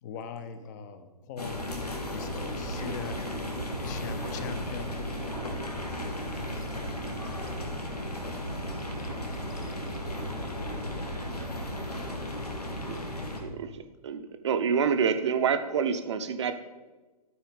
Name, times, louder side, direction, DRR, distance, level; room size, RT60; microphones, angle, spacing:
voice 1, 0.0-1.6 2.1-3.5 3.8-5.0, left 6 dB, 30° left, 10 dB, 0.7 m, -41 dB
sound 1, 1.4-13.4, left 1 dB, 80° left, 1.7 m, -36 dB
sound 2, 2.1-12.1, right 2 dB, 80° right, 1.0 m, -41 dB
voice 2, 5.4-6.1 6.6-6.7 8.8-9.9 12.9-13.5, left 3 dB, 60° left, 4 dB, 1.7 m, -53 dB
voice 3, 13.4-16.5, right 6 dB, 45° right, 9 dB, 0.7 m, -27 dB
12.5 x 4.5 x 5.1 m, 1.2 s
figure-of-eight pair, 125°, 20 cm